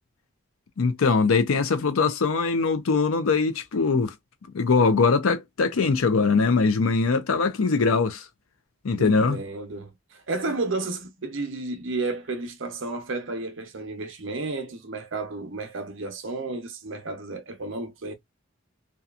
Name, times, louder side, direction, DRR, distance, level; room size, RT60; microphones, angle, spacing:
voice 1, 0.8-4.1 4.5-8.2 8.8-9.4, left 4 dB, 75° left, 0.5 m, -22 dB
voice 2, 8.9-18.1, right 3 dB, 60° right, 0.7 m, -32 dB
2.8 x 2.3 x 2.4 m
head